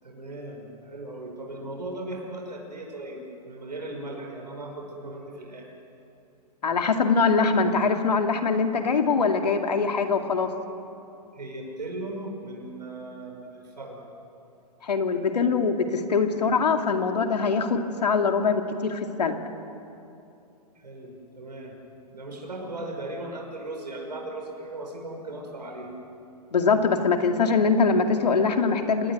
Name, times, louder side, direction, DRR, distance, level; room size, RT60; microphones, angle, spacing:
voice 1, 0.0-5.7 11.3-14.1 20.8-21.7 22.1-25.9, right 2 dB, 90° right, 1 dB, 5.9 m, -37 dB
voice 2, 6.6-10.5 14.8-19.4 26.5-29.1, left 4 dB, 80° left, 5 dB, 2.5 m, -23 dB
27.0 x 19.0 x 9.5 m, 2.8 s
hypercardioid pair, 125°, 21 cm